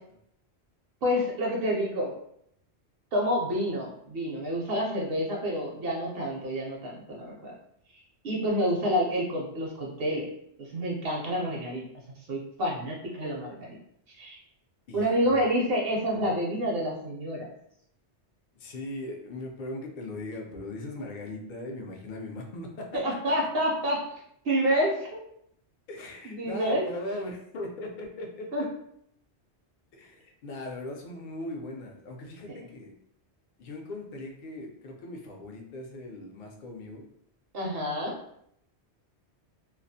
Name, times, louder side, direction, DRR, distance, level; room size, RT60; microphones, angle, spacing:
voice 1, 1.0-2.1 3.1-7.5 8.2-10.3 10.6-11.8 12.3-13.8 14.2-14.4 14.9-17.5 22.9-24.0 24.4-25.2 26.2-26.8 28.5-28.6 32.5-32.6 37.5-38.1, equal, 65° right, -2 dB, 0.7 m, -28 dB
voice 2, 14.9-15.4 18.5-23.0 25.9-28.7 29.9-32.9 33.6-37.1, left 1 dB, 60° left, 1 dB, 0.5 m, -39 dB
2.3 x 2.0 x 2.6 m, 0.72 s
omnidirectional pair, 1.1 m